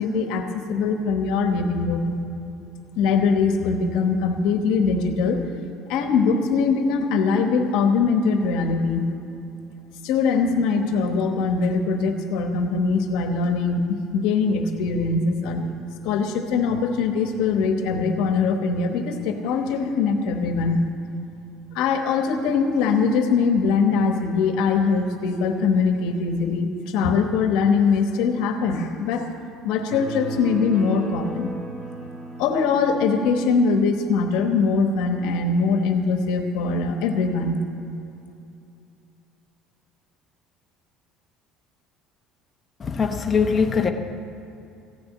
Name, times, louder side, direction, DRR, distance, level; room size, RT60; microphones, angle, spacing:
voice 1, 0.0-2.1 3.0-5.4 5.9-9.1 10.0-20.8 21.7-29.3 29.6-31.6 32.4-37.6, left 5 dB, 70° left, 5 dB, 1.1 m, -22 dB
sound 1, 29.9-33.4, right 3 dB, 30° right, 2.9 m, -35 dB
voice 2, 42.8-43.9, left 5 dB, 20° left, 4 dB, 0.8 m, -21 dB
15.0 x 6.9 x 9.4 m, 2.7 s
cardioid pair, 170°, 0 cm